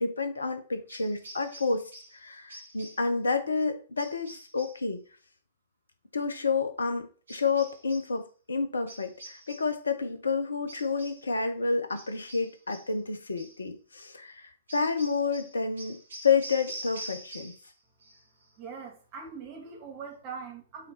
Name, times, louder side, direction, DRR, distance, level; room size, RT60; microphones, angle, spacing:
voice 1, 0.0-5.0 6.1-8.2 8.5-16.0 16.2-17.5, left 4 dB, 70° left, 1.1 m, -29 dB
sound 1, 0.9-2.2 2.5-3.1 4.0-4.8 7.3-8.1 8.9-9.8 10.7-11.3 11.9-13.0 13.4-13.6 14.7-17.7 18.0-18.5, right 1 dB, 65° right, 2.2 m, -46 dB
voice 2, 18.6-20.9, right 5 dB, 30° right, 2.1 m, -42 dB
5.6 x 3.9 x 5.8 m
figure-of-eight pair, 110°, 0 cm